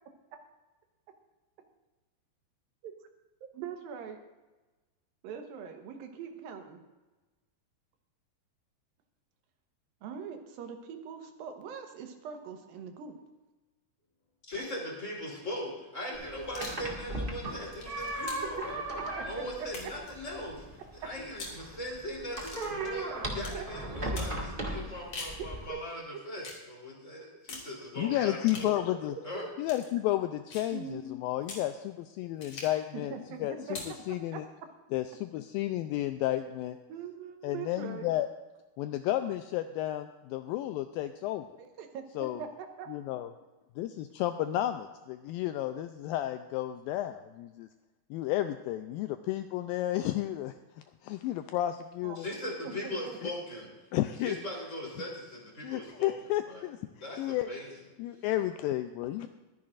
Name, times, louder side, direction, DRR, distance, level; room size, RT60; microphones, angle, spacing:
voice 1, 3.5-4.2 5.2-6.8 10.0-13.2 18.2-18.7 19.2-19.7 22.4-22.5 23.5-23.6 25.7-25.8 28.8-29.5 30.7-31.0 32.9-33.4 33.7-33.8 34.3-34.4 36.9-38.1 41.6-42.9 52.0-52.2 52.6-53.2, right 7 dB, 75° right, 5 dB, 2.7 m, -42 dB
voice 2, 14.5-18.8 19.2-20.6 20.9-28.7 29.2-29.4 52.2-53.7 54.2-56.1 56.5-56.6 57.0-57.7, left 1 dB, 20° left, -3 dB, 3.5 m, -39 dB
sound 1, 16.1-25.7, right 1 dB, 55° right, 0.5 m, -38 dB
sound 2, 16.4-16.9 17.5-18.6 19.7-20.1 21.3-21.6 22.4-22.7 23.4-23.6 24.2-24.4 24.9-25.4 26.4-26.6 27.5-27.7 28.4-28.7 29.6-29.9 30.5-30.7 31.4-31.7 32.4-32.8 33.7-34.0, left 3 dB, 45° left, 3.3 m, -43 dB
voice 3, 28.0-29.2 29.6-33.1 33.4-33.8 34.1-34.5 34.9-36.8 37.4-38.3 38.8-41.5 42.2-42.4 42.9-43.3 43.8-47.7 48.1-50.5 51.0-52.3 53.2-53.3 53.9-54.4 55.6-56.8 57.2-57.5 58.0-59.3, left 14 dB, 85° left, 9 dB, 2.1 m, -32 dB
22.0 x 10.0 x 2.5 m, 1.2 s
omnidirectional pair, 4.5 m